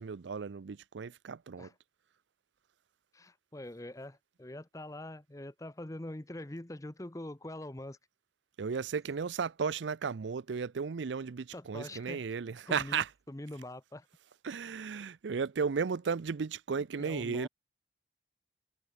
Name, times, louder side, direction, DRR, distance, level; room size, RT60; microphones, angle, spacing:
voice 1, 0.0-1.7 8.6-13.1 14.4-17.5, right 5 dB, 85° right, 0.5 m, -34 dB
voice 2, 3.1-8.0 11.5-12.2 12.7-14.1 17.0-17.5, left 1 dB, 20° left, 0.8 m, -44 dB
head